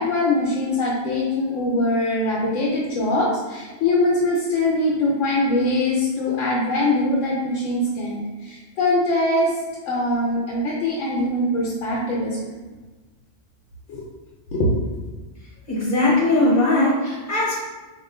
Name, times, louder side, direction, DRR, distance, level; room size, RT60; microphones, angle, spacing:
voice 1, 0.0-9.5 9.8-12.5 13.9-14.1 14.5-14.7, left 1 dB, 80° left, -4 dB, 1.1 m, -22 dB
voice 2, 15.7-17.6, left 2 dB, 45° left, -7 dB, 1.1 m, -19 dB
5.4 x 2.6 x 2.5 m, 1.2 s
omnidirectional pair, 1.3 m